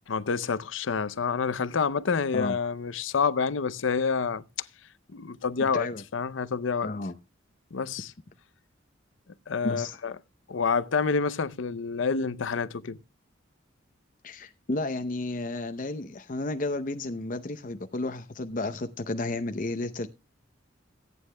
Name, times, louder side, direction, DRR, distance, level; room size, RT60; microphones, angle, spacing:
voice 1, 0.1-4.7 5.1-5.9 6.1-6.9 7.7-8.1 9.5-10.1 10.5-13.0, left 5 dB, 80° left, 0.6 m, -28 dB
voice 2, 6.8-7.1 9.6-9.9 14.2-20.1, left 2 dB, 45° left, 0.7 m, -32 dB
17.5 x 9.5 x 2.2 m
head